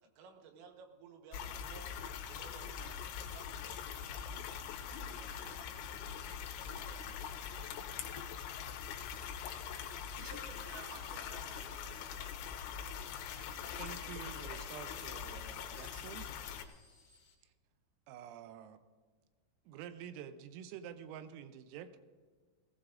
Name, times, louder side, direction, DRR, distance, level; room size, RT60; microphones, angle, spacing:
voice 1, 0.0-3.0 3.3-3.8 4.3-7.0, right 6 dB, 70° right, 4 dB, 3.1 m, -59 dB
sound 1, 1.3-16.7, left 8 dB, 80° left, 3.2 m, -43 dB
sound 2, 9.0-17.3, left 5 dB, 40° left, 3.2 m, -66 dB
voice 2, 10.2-12.2, right 5 dB, 55° right, 0 dB, 2.7 m, -53 dB
voice 3, 13.8-16.3 17.4-17.5 18.1-18.8 19.7-22.0, right 9 dB, 90° right, 10 dB, 3.4 m, -48 dB
19.5 x 16.5 x 2.5 m, 1.5 s
omnidirectional pair, 5.9 m